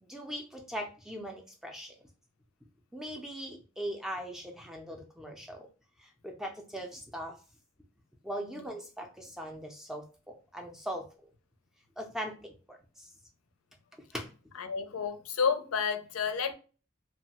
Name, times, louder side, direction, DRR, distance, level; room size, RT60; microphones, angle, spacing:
voice 1, 0.0-1.9 2.9-5.7 6.0-7.4 8.2-11.1 12.0-13.1 14.1-14.3, equal, ahead, 0.4 m, -40 dB
voice 2, 14.6-16.5, left 6 dB, 80° left, 0.5 m, -30 dB
3.0 x 2.1 x 2.8 m
head